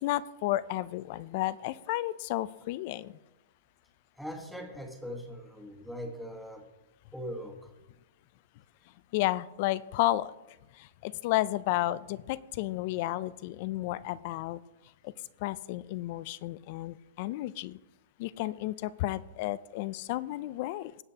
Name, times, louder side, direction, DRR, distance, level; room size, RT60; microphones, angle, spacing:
voice 1, 0.0-3.1 9.1-10.3 10.8-14.6 15.0-15.1 15.4-17.8 18.2-20.9, left 16 dB, 45° left, 18 dB, 0.4 m, -32 dB
voice 2, 4.2-6.7 7.1-7.7, equal, ahead, 3 dB, 1.3 m, -41 dB
17.5 x 8.0 x 2.8 m, 1.0 s
hypercardioid pair, 140°, 0 cm